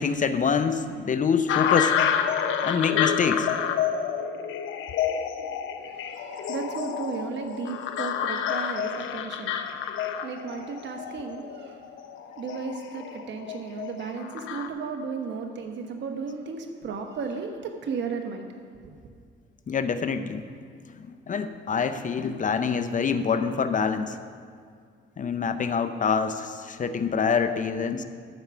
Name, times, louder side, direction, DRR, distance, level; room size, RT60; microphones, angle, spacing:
voice 1, 0.0-2.0 2.6-3.5 19.7-20.6 21.0-24.2 25.2-28.0, left 6 dB, 40° left, 10 dB, 0.6 m, -26 dB
sound 1, 1.5-14.7, left 8 dB, 80° left, 0.7 m, -29 dB
voice 2, 5.8-11.9 12.3-18.5, right 5 dB, 65° right, 4 dB, 1.1 m, -35 dB
13.5 x 4.8 x 7.0 m, 2.1 s
cardioid pair, 90°, 20 cm